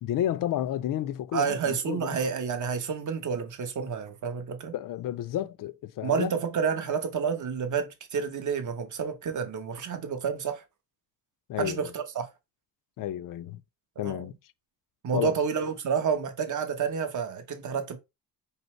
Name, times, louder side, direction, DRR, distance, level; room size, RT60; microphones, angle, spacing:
voice 1, 0.0-2.2 4.7-6.3 11.5-11.9 13.0-13.6 14.0-14.3 15.1-15.4, left 12 dB, 55° left, 0.5 m, -31 dB
voice 2, 1.3-4.7 6.0-10.6 11.6-12.3 14.0-14.3 15.0-18.0, right 6 dB, 50° right, 1.0 m, -29 dB
5.4 x 2.0 x 4.4 m
cardioid pair, 120°, 39 cm